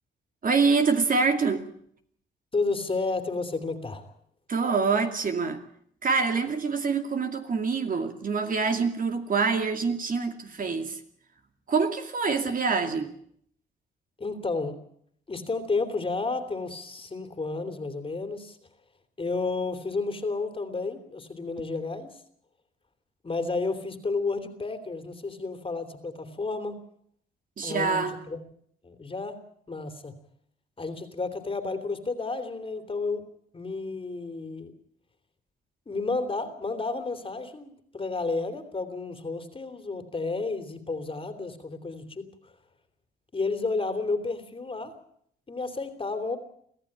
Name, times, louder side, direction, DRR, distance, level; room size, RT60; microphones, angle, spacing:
voice 1, 0.4-1.7 4.5-5.6 6.0-11.0 11.7-13.2 27.6-28.1, right 4 dB, 45° right, 6 dB, 2.5 m, -25 dB
voice 2, 2.5-4.1 14.2-14.8 15.3-18.6 19.2-22.2 23.2-26.8 27.6-28.4 28.8-29.4 29.7-30.2 30.8-33.2 33.5-34.7 35.9-42.5 43.3-44.9 45.5-46.4, left 3 dB, 25° left, 9 dB, 3.0 m, -31 dB
24.5 x 15.0 x 8.8 m, 0.67 s
cardioid pair, 90°, 20 cm